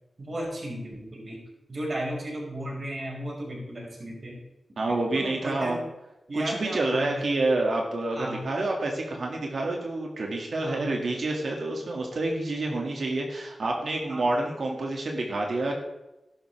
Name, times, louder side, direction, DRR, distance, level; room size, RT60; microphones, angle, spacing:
voice 1, 0.2-1.4 1.7-4.4 4.9-5.8 6.3-7.3 8.1-8.4 10.6-11.0 12.4-12.6 14.1-14.2, right 1 dB, 50° right, -3 dB, 5.1 m, -35 dB
voice 2, 4.8-5.8 6.3-15.8, right 2 dB, 75° right, 0 dB, 2.0 m, -28 dB
13.5 x 11.0 x 3.4 m, 0.97 s
wide cardioid pair, 85°, 0 cm